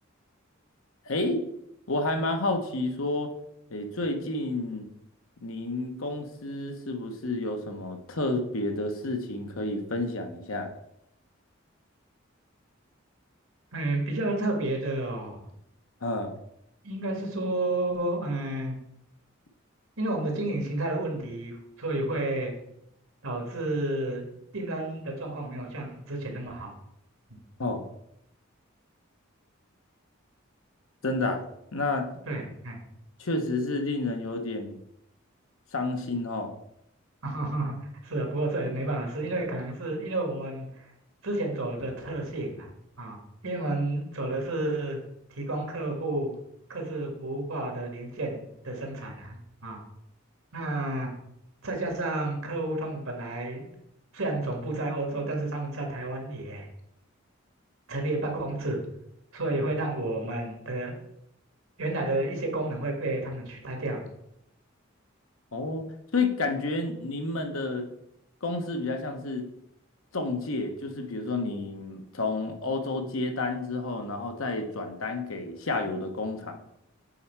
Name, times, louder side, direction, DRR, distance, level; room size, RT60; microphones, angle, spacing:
voice 1, 1.1-1.4 1.9-3.3 3.7-4.9 5.4-10.7 16.0-16.4 27.6-27.8 31.0-31.4 31.7-32.1 33.2-34.8 35.7-36.5 65.5-65.8 66.1-67.9 68.4-69.5 70.1-76.6, left 2 dB, 85° left, 5 dB, 1.0 m, -30 dB
voice 2, 13.7-15.5 16.8-18.8 20.0-22.5 23.2-24.2 24.5-26.7 32.3-32.8 37.2-37.8 38.0-40.9 41.2-43.2 43.4-45.0 45.3-46.3 46.7-49.8 50.5-51.1 51.6-53.7 54.1-56.7 57.9-58.8 59.3-61.0 61.8-64.0, right 2 dB, 85° right, 2 dB, 1.9 m, -31 dB
7.8 x 4.4 x 4.6 m, 0.78 s
head